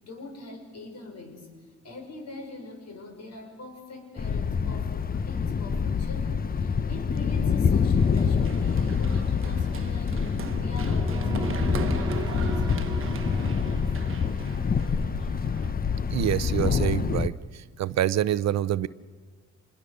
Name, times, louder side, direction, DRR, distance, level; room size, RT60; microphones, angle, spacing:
voice 1, 0.0-1.5 1.8-13.2, left 2 dB, 60° left, 3 dB, 6.3 m, -43 dB
Thunder, 4.2-17.3, left 6 dB, 30° left, 0.7 m, -26 dB
Run, 8.0-15.7, right 7 dB, 45° right, 1.2 m, -41 dB
sound 1, 10.6-15.0, right 2 dB, 15° right, 2.2 m, -35 dB
voice 2, 16.1-17.3 17.8-18.9, right 12 dB, 60° right, 18 dB, 0.7 m, -26 dB
27.0 x 21.0 x 6.7 m, 1.4 s
cardioid pair, 90°, 30 cm